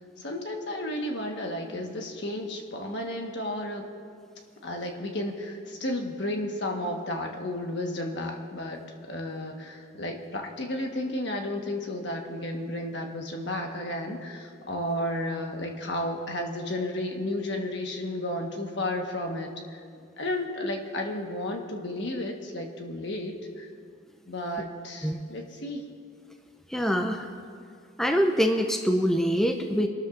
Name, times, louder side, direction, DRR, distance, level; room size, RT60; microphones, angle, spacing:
voice 1, 0.2-3.8 4.6-19.8 20.2-23.7 24.3-25.8, left 1 dB, 60° left, 2 dB, 1.4 m, -33 dB
voice 2, 26.7-27.3 28.0-29.9, equal, ahead, 3 dB, 0.5 m, -24 dB
26.5 x 13.0 x 2.6 m, 2.3 s
head